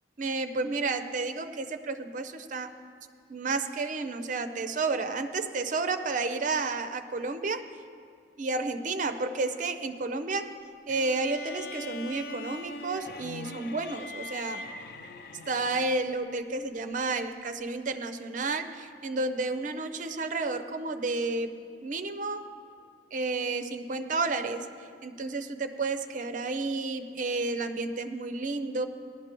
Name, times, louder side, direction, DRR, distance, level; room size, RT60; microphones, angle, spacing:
voice 1, 0.2-2.7 3.3-7.7 8.4-10.5 10.9-14.6 15.5-22.5 23.1-28.9, right 3 dB, 45° right, 9 dB, 0.5 m, -31 dB
sound 1, 10.9-16.2, left 2 dB, 60° left, 0.5 m, -41 dB
17.0 x 11.5 x 3.0 m, 2.2 s
head